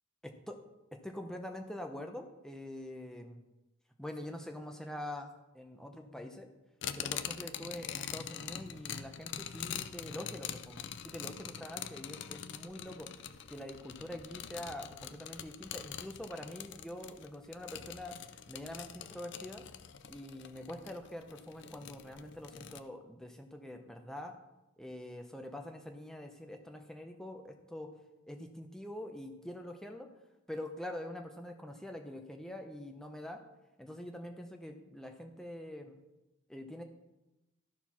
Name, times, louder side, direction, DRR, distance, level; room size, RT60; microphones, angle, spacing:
voice 1, 0.9-3.4 4.0-6.5 6.9-13.1 13.5-18.1 18.5-19.6 20.1-24.3 24.8-27.9 28.3-30.1 30.5-33.4 33.8-36.0 36.5-36.8, left 1 dB, ahead, 4 dB, 0.8 m, -45 dB
sound 1, 6.8-22.8, left 9 dB, 55° left, 0.4 m, -44 dB
13.0 x 4.6 x 5.7 m, 0.99 s
head